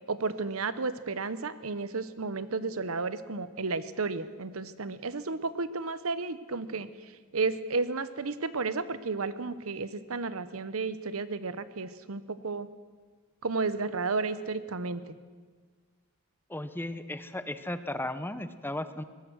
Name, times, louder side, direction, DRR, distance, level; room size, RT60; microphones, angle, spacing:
voice 1, 0.1-6.9 7.3-12.7 13.4-15.1, right 4 dB, 75° right, 14 dB, 1.0 m, -32 dB
voice 2, 16.5-19.0, left 1 dB, 10° left, 11 dB, 0.8 m, -35 dB
22.5 x 19.5 x 6.3 m, 1.5 s
head